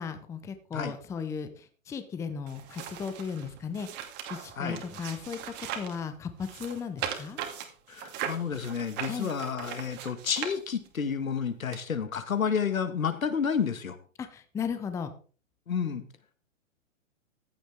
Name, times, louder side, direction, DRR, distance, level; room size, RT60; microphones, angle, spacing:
voice 1, 0.0-1.5 1.9-3.9 4.3-5.4 5.7-7.4 9.1-9.3 14.2-15.1, left 6 dB, 5° left, 10 dB, 0.7 m, -35 dB
sound 1, 2.5-6.0 6.4-11.0 11.7-11.8, right 9 dB, 25° right, 2.2 m, -39 dB
voice 2, 7.9-14.0 15.7-16.0, left 6 dB, 80° left, 11 dB, 1.9 m, -30 dB
15.0 x 10.0 x 3.6 m, 0.40 s
hypercardioid pair, 135°, 40 cm